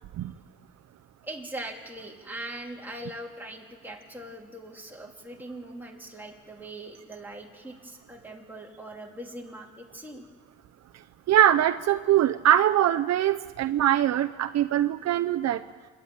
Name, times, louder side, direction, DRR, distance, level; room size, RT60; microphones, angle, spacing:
voice 1, 1.2-10.3, right 1 dB, 5° right, -1 dB, 3.2 m, -41 dB
voice 2, 11.3-15.6, right 11 dB, 60° right, 9 dB, 0.7 m, -22 dB
28.0 x 11.5 x 8.9 m, 1.5 s
cardioid pair, 110°, 30 cm